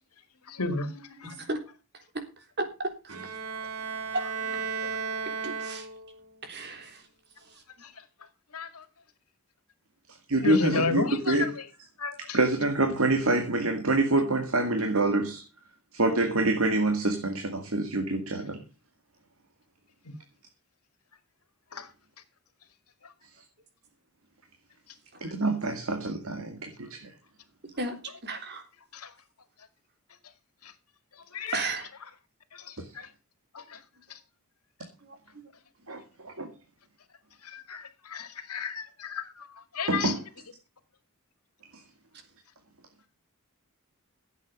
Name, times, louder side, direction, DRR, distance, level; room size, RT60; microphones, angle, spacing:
voice 1, 0.5-1.4 7.8-7.9 8.5-8.8 10.4-11.5 12.0-12.4 21.7-21.9 28.9-29.1 31.3-31.6 32.5-32.6 33.0-33.1 33.5-33.8 37.4-39.5 39.7-40.1, left 4 dB, 85° left, 2.1 m, -32 dB
voice 2, 2.6-3.1 5.4-5.9 6.4-7.0 27.8-28.0 28.2-28.6 31.5-31.9 35.1-35.2, right 2 dB, 50° right, 3.4 m, -33 dB
Bowed string instrument, 3.1-6.3, right 5 dB, 80° right, 2.9 m, -34 dB
voice 3, 10.3-11.5 12.3-15.4 15.9-18.6 25.2-27.1 32.8-32.9 35.9-36.5 39.9-40.2, right 2 dB, 65° right, 2.2 m, -26 dB
15.5 x 8.3 x 5.5 m
head